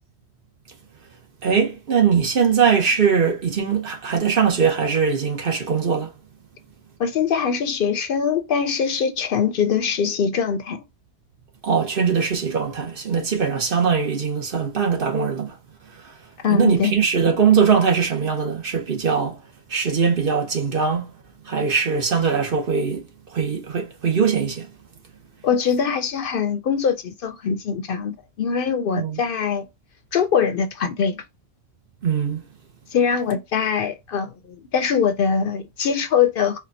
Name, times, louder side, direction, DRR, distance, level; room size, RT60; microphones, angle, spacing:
voice 1, 1.4-6.1 11.6-15.5 16.0-16.1 16.5-19.4 19.7-21.1 21.5-24.7 28.9-29.2 32.0-32.4, right 6 dB, 55° right, 1.1 m, -21 dB
voice 2, 7.0-10.8 16.4-16.9 25.4-29.7 30.1-31.2 32.9-36.6, left 7 dB, 65° left, 0.7 m, -22 dB
4.4 x 2.4 x 2.6 m
omnidirectional pair, 1.1 m